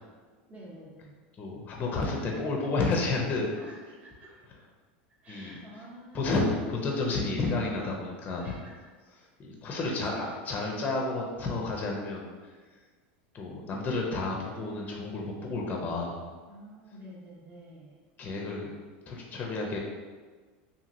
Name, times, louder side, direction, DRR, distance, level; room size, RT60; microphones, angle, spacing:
voice 1, 0.5-1.1 3.5-4.4 5.2-6.4 8.4-8.7 9.8-10.3 13.6-13.7 16.5-18.0, equal, 25° right, -5 dB, 0.9 m, -49 dB
voice 2, 1.4-3.5 5.3-5.6 6.1-8.5 9.4-12.5 13.3-16.2 18.2-18.8 19.1-19.8, left 3 dB, 30° left, 0 dB, 0.5 m, -31 dB
2.8 x 2.6 x 2.6 m, 1.4 s
supercardioid pair, 115°, 6 cm